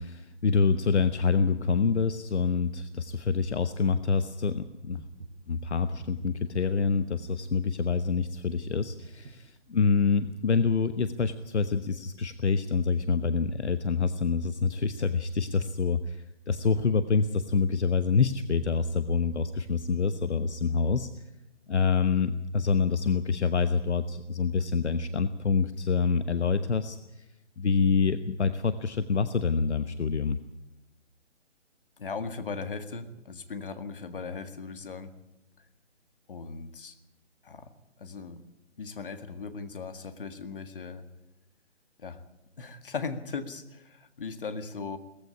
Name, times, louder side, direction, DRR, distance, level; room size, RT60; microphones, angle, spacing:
voice 1, 0.0-5.0 5.5-21.1 21.7-27.2 27.6-30.4, left 5 dB, 70° left, 11 dB, 1.2 m, -26 dB
sound 1, 4.9-11.7, right 5 dB, 30° right, 1.3 m, -49 dB
voice 2, 32.0-35.1 36.3-37.0 37.4-37.7 38.0-38.4 38.8-41.1 42.0-42.2 42.6-45.0, left 4 dB, 50° left, 9 dB, 2.0 m, -38 dB
18.0 x 15.0 x 9.8 m, 0.95 s
hypercardioid pair, 165°, 36 cm